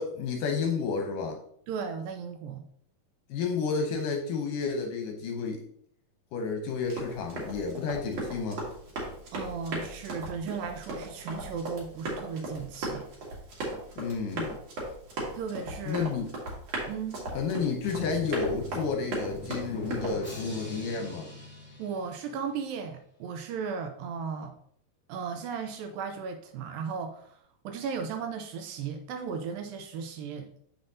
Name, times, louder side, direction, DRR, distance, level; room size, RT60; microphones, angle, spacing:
voice 1, 0.0-1.4 3.3-5.6 6.3-8.7 14.0-14.6 15.9-16.3 17.3-21.3, left 5 dB, 75° left, 3 dB, 2.1 m, -31 dB
voice 2, 1.7-2.6 9.3-13.1 15.3-16.1 16.9-17.2 21.8-24.6 25.1-30.6, right 6 dB, 80° right, 6 dB, 2.2 m, -36 dB
Run, 6.8-20.2, right 2 dB, 50° right, 2.7 m, -37 dB
Drum, 17.8-22.7, left 2 dB, 5° left, 1.7 m, -42 dB
7.2 x 6.9 x 2.7 m, 0.64 s
omnidirectional pair, 4.4 m